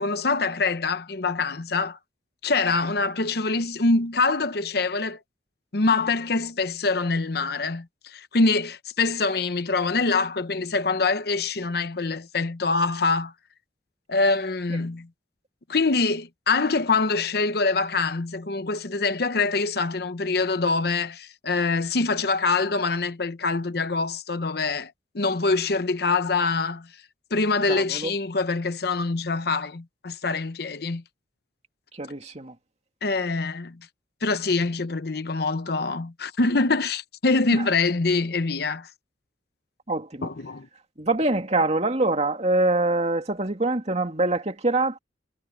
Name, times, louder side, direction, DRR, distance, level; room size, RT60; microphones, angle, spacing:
voice 1, 0.0-2.0 2.4-5.2 5.7-13.3 14.1-15.1 15.7-26.9 27.3-31.0 33.0-33.9 34.2-38.9 40.2-40.7, left 3 dB, 55° left, 0.8 m, -24 dB
voice 2, 27.7-28.1 32.0-32.5 37.5-37.6 39.9-40.3 41.0-45.0, right 2 dB, 35° right, 2.4 m, -24 dB
head